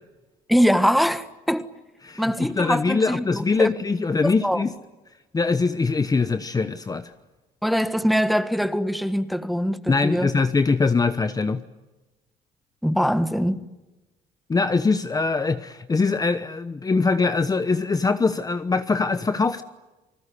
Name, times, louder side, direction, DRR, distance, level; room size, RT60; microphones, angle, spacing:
voice 1, 0.5-1.7 2.2-3.7 4.2-4.6 7.6-10.3 12.8-13.6, equal, ahead, 1.5 m, -23 dB
voice 2, 2.0-4.7 5.3-7.1 9.9-11.6 14.5-19.6, left 4 dB, 20° left, 1.1 m, -22 dB
29.0 x 20.0 x 9.9 m
cardioid pair, 110°, 17 cm